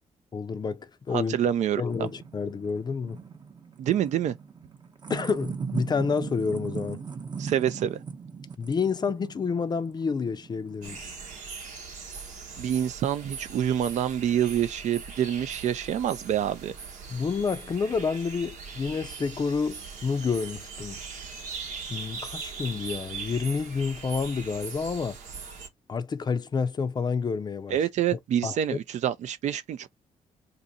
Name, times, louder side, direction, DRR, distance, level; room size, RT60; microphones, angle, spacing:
voice 1, 0.3-1.4 1.8-3.2 5.1-7.0 8.6-11.2 17.1-21.0 21.9-25.2 25.9-27.8 28.1-28.8, left 5 dB, 35° left, 0.5 m, -29 dB
voice 2, 1.1-1.8 3.8-4.3 7.4-8.0 12.6-16.7 27.7-29.9, right 10 dB, 65° right, 0.4 m, -26 dB
sound 1, 1.3-11.4, right 5 dB, 35° right, 0.8 m, -39 dB
sound 2, 10.8-25.7, right 5 dB, 85° right, 1.0 m, -40 dB
2.6 x 2.6 x 4.1 m
cardioid pair, 90°, 13 cm